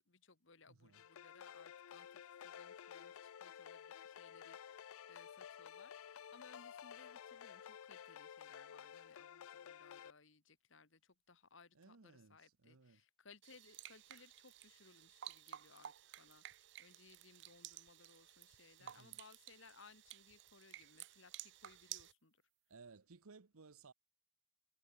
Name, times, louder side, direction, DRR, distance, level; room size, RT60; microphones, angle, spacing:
voice 1, 0.0-22.4, left 4 dB, 60° left, 1.6 m, -64 dB
voice 2, 0.7-1.0 11.7-13.0 18.8-19.2 22.7-23.9, right 4 dB, 85° right, 0.9 m, -61 dB
sound 1, 0.9-10.1, left 8 dB, 75° left, 0.4 m, -53 dB
sound 2, 13.4-22.1, right 12 dB, 55° right, 0.4 m, -54 dB
head